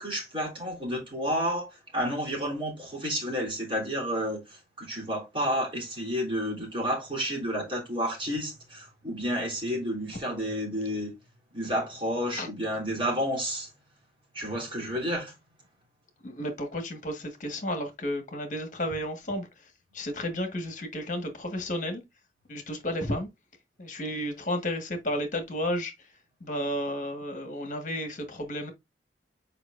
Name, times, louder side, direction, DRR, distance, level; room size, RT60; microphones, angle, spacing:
voice 1, 0.0-11.1 11.5-13.7 14.3-15.3, equal, 30° right, 3.2 m, -31 dB
voice 2, 16.2-19.5 19.9-22.0 22.5-23.3 23.8-25.9 26.4-28.7, left 1 dB, 45° left, 1.5 m, -32 dB
7.7 x 5.1 x 2.5 m
head